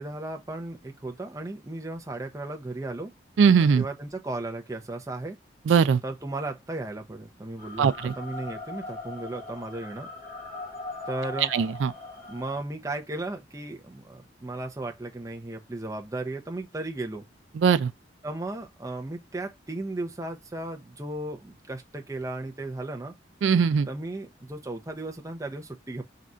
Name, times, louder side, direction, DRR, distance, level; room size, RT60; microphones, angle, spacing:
voice 1, 0.0-3.1 3.7-5.4 6.0-7.9 8.1-10.1 11.1-11.5 12.3-17.2 18.2-23.1 23.9-26.0, right 2 dB, 15° right, 0.6 m, -35 dB
voice 2, 3.4-3.8 5.7-6.0 7.8-8.1 11.5-11.9 17.6-17.9 23.4-23.9, right 6 dB, 80° right, 0.3 m, -20 dB
sound 1, 7.6-12.6, left 2 dB, 50° left, 1.1 m, -40 dB
3.8 x 2.4 x 4.2 m
head